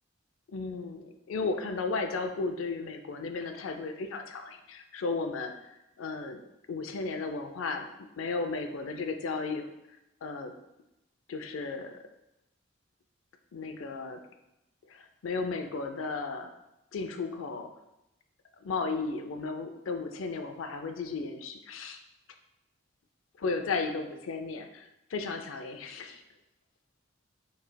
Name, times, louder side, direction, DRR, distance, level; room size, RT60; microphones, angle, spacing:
voice 1, 0.5-5.7 6.0-6.4 6.7-9.7 10.2-10.5 11.3-12.0 13.5-14.2 14.9-16.5 16.9-17.7 18.6-22.0 23.4-26.2, left 4 dB, 90° left, 7 dB, 0.4 m, -34 dB
5.2 x 3.2 x 2.2 m, 0.91 s
head